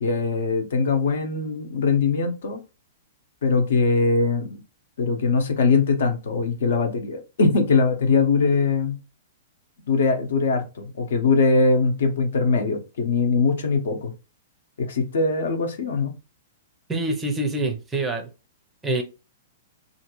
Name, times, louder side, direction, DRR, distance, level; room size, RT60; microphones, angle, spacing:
voice 1, 0.0-2.6 3.4-4.6 5.0-9.0 9.9-14.1 14.8-16.1, left 4 dB, 70° left, 0.9 m, -21 dB
voice 2, 16.9-18.3 18.8-19.0, right 2 dB, 10° right, 0.5 m, -25 dB
2.8 x 2.6 x 2.9 m
hypercardioid pair, 165°, 0 cm